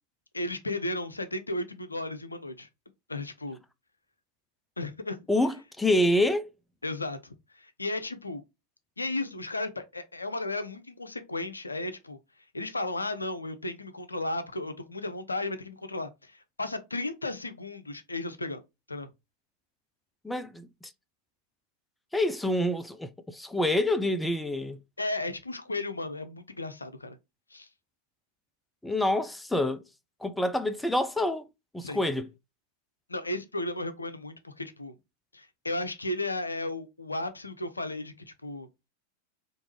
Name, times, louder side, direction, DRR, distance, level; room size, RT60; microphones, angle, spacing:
voice 1, 0.3-2.7 3.1-3.6 4.8-5.3 6.8-8.4 9.0-12.2 12.5-18.6 18.9-19.1 25.0-27.2 27.5-27.7 31.8-32.0 33.1-35.0 35.3-38.1 38.4-38.7, left 2 dB, 80° left, 0.5 m, -34 dB
voice 2, 5.3-6.5 20.2-20.9 22.1-24.8 28.8-29.8 30.2-31.5 31.7-32.3, left 1 dB, 5° left, 0.4 m, -27 dB
4.5 x 2.5 x 3.0 m
figure-of-eight pair, 90°, 0 cm